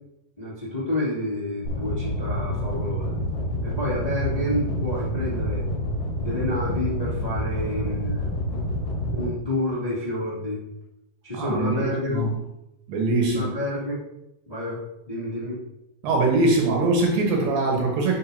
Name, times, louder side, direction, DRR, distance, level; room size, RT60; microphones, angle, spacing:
voice 1, 0.4-3.2 3.6-5.6 6.2-8.5 9.1-10.6 11.2-12.2 13.3-14.0 14.4-14.8 15.1-15.6, left 1 dB, 15° left, -9 dB, 1.5 m, -29 dB
sound 1, 1.6-9.3, equal, 55° left, 2.7 m, -28 dB
voice 2, 11.3-12.3 12.9-13.5 16.0-18.2, right 2 dB, 65° right, 0 dB, 2.8 m, -22 dB
11.5 x 6.0 x 2.8 m, 0.90 s
omnidirectional pair, 4.7 m